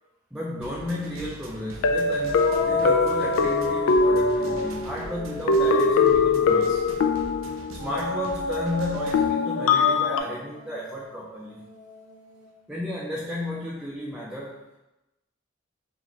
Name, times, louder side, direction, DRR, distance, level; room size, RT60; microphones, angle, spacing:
voice 1, 0.3-6.9 7.8-11.7 12.7-14.6, left 1 dB, 5° right, -5 dB, 0.4 m, -33 dB
sound 1, 0.6-9.3, right 3 dB, 80° right, 0.4 m, -42 dB
sound 2, 0.7-0.8 1.8-5.0 5.5-8.1 9.1-10.2, left 4 dB, 90° left, 0.3 m, -22 dB
sound 3, 2.3-6.9 7.8-12.5, left 2 dB, 70° left, 1.4 m, -32 dB
4.1 x 2.8 x 2.9 m, 0.98 s
head